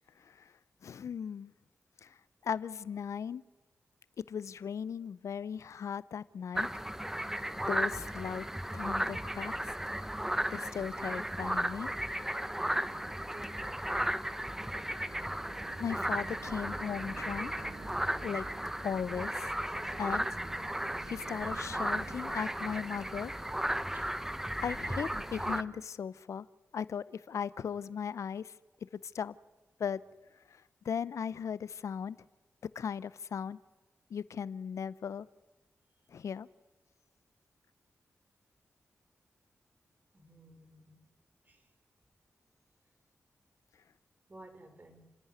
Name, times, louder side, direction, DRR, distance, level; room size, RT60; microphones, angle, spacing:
voice 1, 0.2-0.5 0.8-1.5 2.0-2.2 2.4-3.4 4.2-6.7 7.7-8.5 8.7-9.7 10.5-11.9 15.8-17.7 18.2-18.4 18.8-19.5 20.0-20.3 21.1-23.3 24.6-26.5 26.7-28.5 29.1-29.3 29.8-30.0 30.5-32.2 32.6-33.6 34.1-35.3 36.1-36.5, left 7 dB, 80° left, 19 dB, 0.6 m, -37 dB
sound 1, 6.5-25.6, right 1 dB, 10° right, 1.0 m, -35 dB
sound 2, 12.6-24.3 24.8-25.8, right 7 dB, 90° right, 0.8 m, -54 dB
voice 2, 13.3-14.2 23.9-24.2 40.1-41.1 41.5-41.7 44.3-45.2, right 1 dB, 35° right, 8 dB, 3.7 m, -54 dB
29.0 x 11.0 x 9.6 m, 1.1 s
cardioid pair, 50°, 5 cm